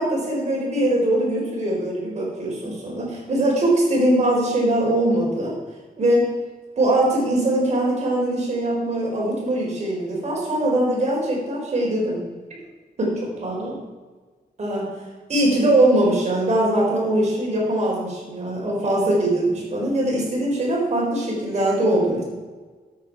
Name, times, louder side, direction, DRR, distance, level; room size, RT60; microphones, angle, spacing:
voice 1, 0.0-5.5 6.0-6.2 6.8-12.2 13.0-13.8 14.6-15.0 15.3-22.2, right 1 dB, 45° right, -3 dB, 4.3 m, -21 dB
13.0 x 8.6 x 4.8 m, 1.4 s
wide cardioid pair, 160°, 16 cm